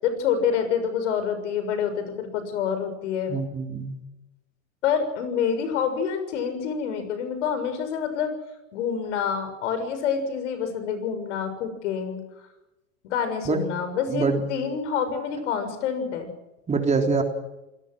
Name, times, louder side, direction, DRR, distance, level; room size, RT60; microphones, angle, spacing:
voice 1, 0.0-3.3 4.8-8.3 8.7-12.2 13.0-16.3, left 7 dB, 75° left, 9 dB, 6.8 m, -27 dB
voice 2, 3.3-4.0 13.4-13.7 14.1-14.4 16.7-17.2, right 4 dB, 20° right, 4 dB, 3.6 m, -24 dB
27.5 x 18.5 x 6.4 m, 0.99 s
hypercardioid pair, 110°, 36 cm